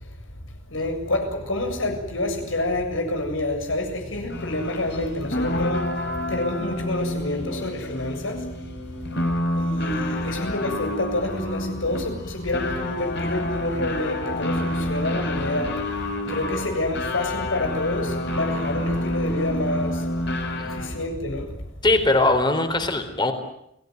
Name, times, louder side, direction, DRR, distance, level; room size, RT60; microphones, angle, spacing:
voice 1, 0.7-8.5 9.6-20.3 20.7-21.5, left 1 dB, 80° left, 5 dB, 7.5 m, -28 dB
sound 1, 4.3-21.0, left 1 dB, 60° left, 5.5 m, -28 dB
voice 2, 21.8-23.3, left 2 dB, 25° left, 8 dB, 4.0 m, -21 dB
30.0 x 19.5 x 9.4 m, 0.78 s
head